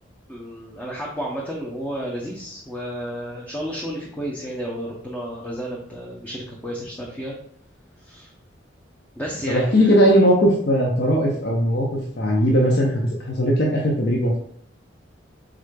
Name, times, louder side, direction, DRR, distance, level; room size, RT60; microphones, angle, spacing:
voice 1, 0.3-7.3 8.1-8.3 9.2-9.9, equal, 10° left, -4 dB, 0.6 m, -32 dB
voice 2, 9.5-14.3, equal, 60° left, -2 dB, 0.7 m, -19 dB
4.9 x 3.7 x 2.2 m, 0.66 s
head